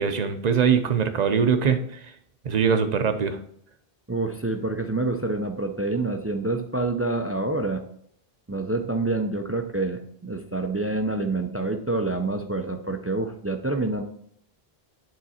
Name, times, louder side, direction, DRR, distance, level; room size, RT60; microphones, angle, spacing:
voice 1, 0.0-1.8 2.4-3.4, right 6 dB, 45° right, 9 dB, 0.7 m, -22 dB
voice 2, 4.1-7.8 8.5-14.0, right 2 dB, 25° right, 5 dB, 0.3 m, -27 dB
9.2 x 3.7 x 4.2 m, 0.66 s
omnidirectional pair, 1.0 m